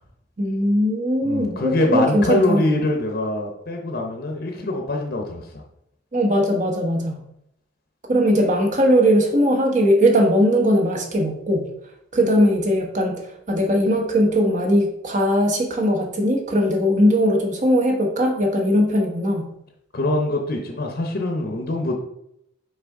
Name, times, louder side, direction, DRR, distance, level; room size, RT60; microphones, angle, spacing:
voice 1, 0.4-2.7 6.1-7.2 8.1-11.7 12.1-13.2 13.5-19.5, equal, 40° right, 1 dB, 1.0 m, -19 dB
voice 2, 1.2-5.6 19.9-22.0, left 2 dB, 50° left, 2 dB, 0.7 m, -24 dB
5.8 x 4.6 x 3.6 m, 0.77 s
head